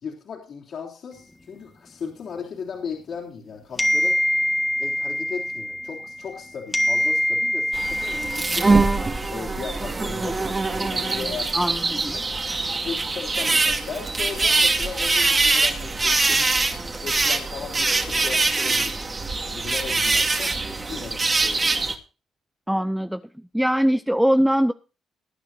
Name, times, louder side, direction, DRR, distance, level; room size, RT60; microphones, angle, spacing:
voice 1, 0.0-4.2 4.8-8.8 9.3-11.5 12.0-12.2 12.8-16.6 17.0-19.0 19.5-21.8, left 6 dB, 60° left, -4 dB, 3.3 m, -36 dB
sound 1, 3.8-6.4 6.7-9.3, equal, 15° left, 1.5 m, -25 dB
sound 2, 7.7-21.9, right 3 dB, 30° right, 2.0 m, -23 dB
voice 2, 11.5-12.2 22.7-23.2 23.5-24.7, equal, 5° right, 10 dB, 0.5 m, -21 dB
20.5 x 9.4 x 2.7 m, 0.33 s
cardioid pair, 90°, 0 cm